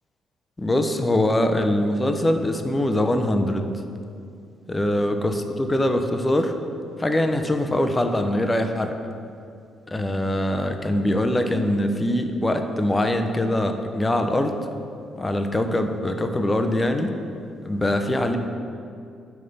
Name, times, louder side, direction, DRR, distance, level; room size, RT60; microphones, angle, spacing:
voice 1, 0.6-3.7 4.7-6.6 7.0-9.0 9.9-14.6 15.2-17.1 17.6-18.4, left 1 dB, 20° left, 6 dB, 0.4 m, -23 dB
5.7 x 3.3 x 5.3 m, 2.5 s
cardioid pair, 90°, 0 cm